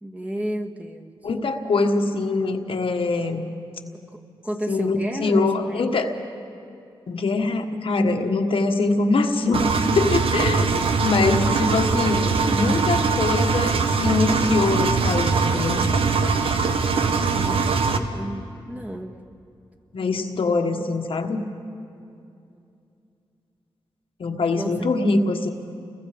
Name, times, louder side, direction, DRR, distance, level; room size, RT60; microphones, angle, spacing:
voice 1, 0.0-1.1 3.9-4.0 4.4-5.9 11.3-11.6 17.3-19.1 24.5-24.7, equal, 15° right, 1 dB, 1.7 m, -32 dB
voice 2, 1.2-3.5 4.7-6.1 7.1-15.9 19.9-21.4 24.2-25.5, left 3 dB, 70° left, 4 dB, 1.5 m, -23 dB
Engine, 9.5-18.0, right 4 dB, 75° right, 1.1 m, -22 dB
29.5 x 22.0 x 5.1 m, 2.6 s
cardioid pair, 75°, 9 cm